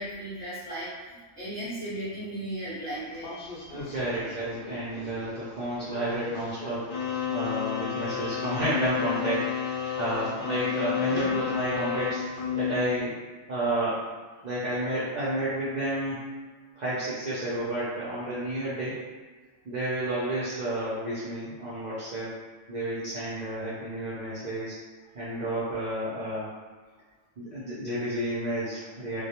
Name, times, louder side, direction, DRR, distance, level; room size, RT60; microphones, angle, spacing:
voice 1, 0.0-4.1 5.8-5.9 7.7-8.3, right 1 dB, 10° left, -11 dB, 0.5 m, -37 dB
sound 1, 2.9-13.0, left 8 dB, 65° left, 0.6 m, -32 dB
voice 2, 3.7-12.2 12.5-13.1 13.5-14.0 14.4-16.3 16.8-19.0 19.6-22.3 22.7-24.8 25.1-26.5 27.4-29.2, right 1 dB, 60° right, -9 dB, 0.4 m, -31 dB
2.2 x 2.1 x 2.8 m, 1.4 s
omnidirectional pair, 1.4 m